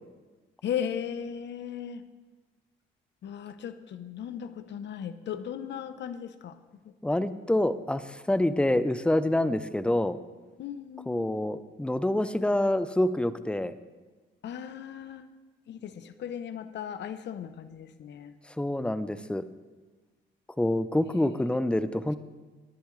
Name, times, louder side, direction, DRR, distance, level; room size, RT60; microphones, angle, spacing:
voice 1, 0.6-2.0 3.2-6.6 6.8-6.9 10.6-11.3 14.4-15.3 15.7-18.4 21.2-21.3, left 8 dB, 65° left, 11 dB, 0.8 m, -37 dB
voice 2, 7.0-10.2 11.1-13.7 18.6-19.5 20.6-22.2, left 1 dB, 5° left, 13 dB, 0.6 m, -27 dB
19.0 x 10.5 x 3.2 m, 1.3 s
cardioid pair, 90°, 20 cm